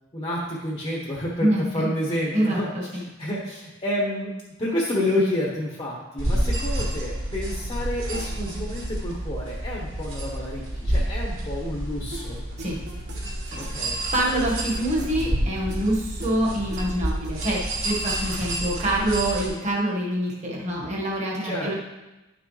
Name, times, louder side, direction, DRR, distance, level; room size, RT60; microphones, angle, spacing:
voice 1, 0.1-4.3 4.6-12.4 13.6-14.0 21.4-21.7, left 1 dB, 30° left, -4 dB, 1.2 m, -29 dB
voice 2, 1.4-1.9 2.3-3.0 12.6-12.8 13.5-13.6 13.9-21.7, right 1 dB, 35° right, -4 dB, 1.6 m, -26 dB
sound 1, 6.2-19.5, right 1 dB, 85° right, 3.1 m, -29 dB
sound 2, 12.1-17.7, right 2 dB, 60° right, 1.6 m, -42 dB
10.5 x 6.1 x 3.3 m, 1.1 s
head